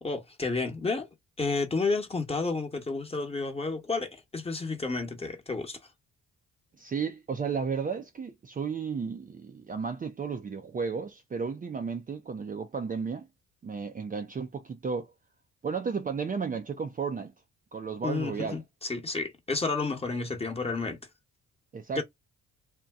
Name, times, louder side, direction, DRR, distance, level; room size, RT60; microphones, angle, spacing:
voice 1, 0.0-1.1 1.4-5.8 18.0-21.0 21.9-22.0, left 3 dB, 20° left, 1.1 m, -31 dB
voice 2, 6.8-13.3 13.6-15.1 15.6-17.3 17.7-18.6 21.7-22.0, right 5 dB, 25° right, 0.5 m, -33 dB
2.6 x 2.2 x 3.4 m
cardioid pair, 90°, 30 cm